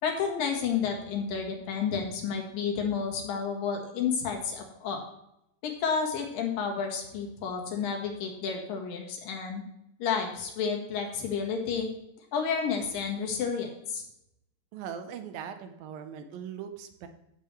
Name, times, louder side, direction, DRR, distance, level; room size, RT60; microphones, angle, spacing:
voice 1, 0.0-5.0 5.6-9.6 10.0-11.9 12.3-14.0, left 6 dB, 75° left, 2 dB, 3.3 m, -31 dB
voice 2, 14.7-17.1, right 8 dB, 90° right, 8 dB, 2.7 m, -40 dB
14.5 x 7.4 x 3.3 m, 0.80 s
omnidirectional pair, 4.1 m